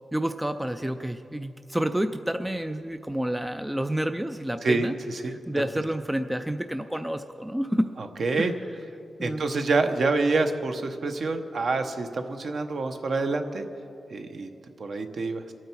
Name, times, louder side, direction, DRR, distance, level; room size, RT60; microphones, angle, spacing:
voice 1, 0.1-4.9 5.3-7.9 8.4-8.8 9.2-9.4, right 1 dB, 5° right, 8 dB, 0.3 m, -29 dB
voice 2, 4.6-5.4 8.0-8.5 9.2-13.6 14.1-14.5 14.8-15.5, right 3 dB, 50° right, 7 dB, 0.9 m, -27 dB
24.0 x 9.0 x 4.5 m, 2.6 s
wide cardioid pair, 155°, 0 cm